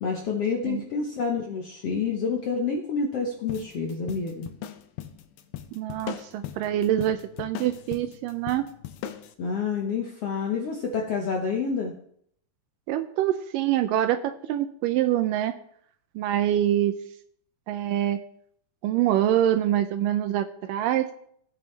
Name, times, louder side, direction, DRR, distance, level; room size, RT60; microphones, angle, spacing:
voice 1, 0.0-4.5 9.4-11.9, left 5 dB, 65° left, 1 dB, 1.5 m, -28 dB
sound 1, 3.5-9.3, left 10 dB, 85° left, 2.5 m, -39 dB
voice 2, 5.7-8.7 12.9-15.5 16.2-16.9 17.7-18.2 18.8-21.1, right 12 dB, 80° right, 10 dB, 2.1 m, -25 dB
16.0 x 9.2 x 3.3 m, 0.66 s
omnidirectional pair, 4.1 m